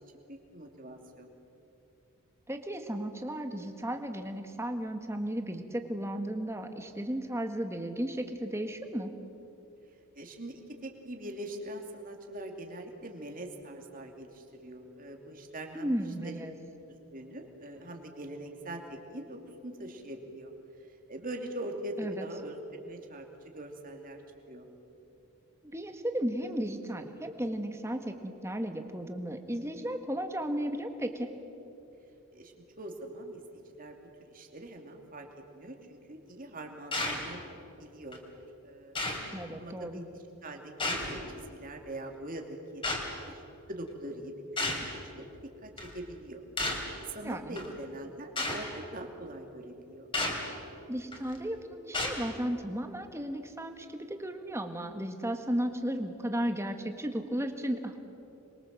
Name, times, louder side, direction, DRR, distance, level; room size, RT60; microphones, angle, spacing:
voice 1, 0.3-1.3 10.1-15.9 16.2-16.4 16.9-20.5 21.1-22.6 22.8-23.3 23.5-24.2 24.5-24.7 32.3-33.4 33.8-34.0 34.3-35.3 35.5-38.3 38.6-38.9 39.5-43.3 43.7-44.3 44.6-44.7 45.1-45.3 45.6-46.4 46.7-50.1, right 1 dB, 40° right, 3 dB, 2.8 m, -43 dB
voice 2, 2.5-9.1 15.7-16.5 22.0-22.2 25.6-31.3 39.3-40.1 47.2-47.6 50.9-58.0, right 1 dB, 10° right, 6 dB, 1.6 m, -34 dB
sound 1, 36.9-37.3 38.1-38.2 38.9-39.3 40.8-41.2 42.8-43.1 44.6-44.9 45.8-45.9 46.6-46.9 47.6-47.7 48.4-48.6 50.1-50.4 51.1-51.4 51.9-52.2, left 2 dB, 25° left, 3.4 m, -32 dB
26.5 x 22.5 x 7.7 m, 2.9 s
head